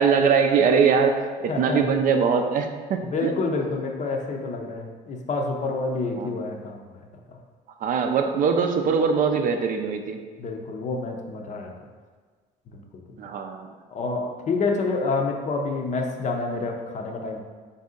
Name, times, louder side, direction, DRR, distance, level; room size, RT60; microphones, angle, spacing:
voice 1, 0.0-3.3 6.2-6.6 7.8-10.2 13.2-13.7, right 6 dB, 55° right, 5 dB, 0.4 m, -22 dB
voice 2, 1.5-1.8 3.1-6.8 7.3-7.4 10.4-11.7 12.7-12.8 13.9-17.4, left 3 dB, 45° left, 2 dB, 0.6 m, -28 dB
4.0 x 2.7 x 3.7 m, 1.5 s
cardioid pair, 110°, 17 cm